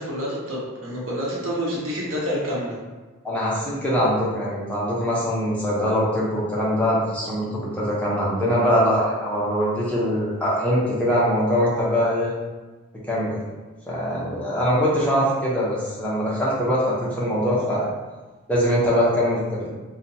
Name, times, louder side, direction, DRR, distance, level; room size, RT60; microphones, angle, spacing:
voice 1, 0.0-2.8, equal, 75° right, -5 dB, 0.8 m, -28 dB
voice 2, 3.2-12.3 13.1-13.4 13.9-17.8 18.5-19.7, equal, 5° left, -8 dB, 0.5 m, -22 dB
2.8 x 2.1 x 2.6 m, 1.2 s
head